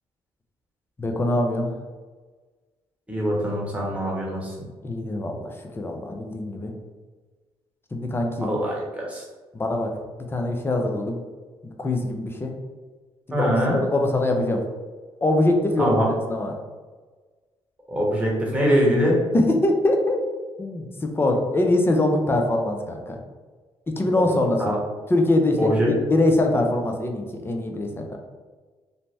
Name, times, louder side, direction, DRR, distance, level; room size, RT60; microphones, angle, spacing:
voice 1, 1.0-1.7 4.8-6.7 7.9-8.5 9.5-9.9 10.3-11.2 11.6-12.5 13.3-14.6 15.2-15.9 16.3-16.6 19.3-20.2 20.6-23.2 23.9-24.8 25.1-28.2, left 2 dB, 20° left, 3 dB, 0.5 m, -23 dB
voice 2, 3.1-4.5 8.4-9.2 13.3-13.8 15.8-16.1 17.9-19.2 24.1-24.2 24.6-24.8 25.6-25.9, equal, 10° right, -3 dB, 1.0 m, -23 dB
2.7 x 2.1 x 3.2 m, 1.4 s
cardioid pair, 80°, 11 cm